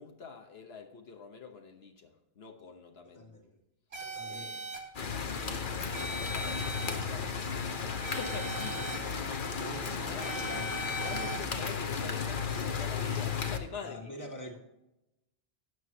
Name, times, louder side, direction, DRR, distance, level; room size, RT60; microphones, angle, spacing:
voice 1, 0.0-3.3 4.2-4.7 5.0-10.5 11.0-14.3, left 5 dB, 75° left, 3 dB, 1.3 m, -46 dB
voice 2, 3.0-3.6 4.0-4.6 9.6-10.7 13.8-14.6, equal, 15° left, 1 dB, 1.7 m, -45 dB
sound 1, 3.9-4.8 5.9-6.9 8.0-9.0 10.2-11.4, right 1 dB, 75° right, 2.1 m, -39 dB
sound 2, 4.9-13.6, left 5 dB, 55° left, 1.1 m, -34 dB
13.0 x 9.5 x 2.8 m, 0.91 s
omnidirectional pair, 1.1 m